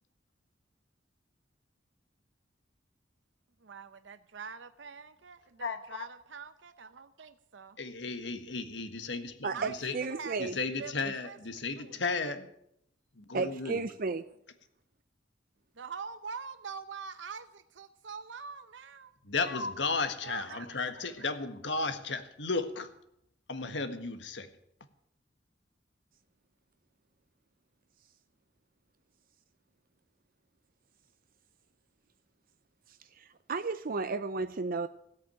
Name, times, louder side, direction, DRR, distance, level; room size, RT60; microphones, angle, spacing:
voice 1, 3.6-7.8 9.5-9.7 10.0-10.5 10.8-10.9 11.2-11.4 11.8-12.0 15.8-19.1 20.2-20.7 21.0-21.3, right 5 dB, 80° right, 11 dB, 0.8 m, -44 dB
voice 2, 5.6-6.1 7.8-10.0 10.4-12.5 13.1-13.9 19.2-22.9 23.5-24.5, left 4 dB, 70° left, 9 dB, 1.6 m, -34 dB
voice 3, 9.4-10.6 13.3-14.2 33.1-34.9, right 4 dB, 50° right, 10 dB, 0.6 m, -33 dB
17.0 x 8.6 x 8.9 m, 0.74 s
head